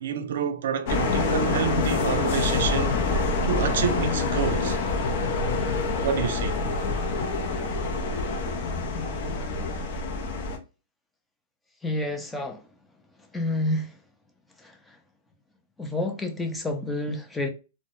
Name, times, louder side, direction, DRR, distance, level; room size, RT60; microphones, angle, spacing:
voice 1, 0.0-3.0 3.4-4.8 6.0-6.6, right 8 dB, 65° right, 0.3 m, -28 dB
sound 1, 0.9-10.6, left 3 dB, 55° left, 0.5 m, -26 dB
voice 2, 11.8-12.6 13.3-13.9 14.6-14.7 15.8-17.5, left 1 dB, 10° left, 0.5 m, -29 dB
2.1 x 2.0 x 2.9 m
hypercardioid pair, 125°, 0 cm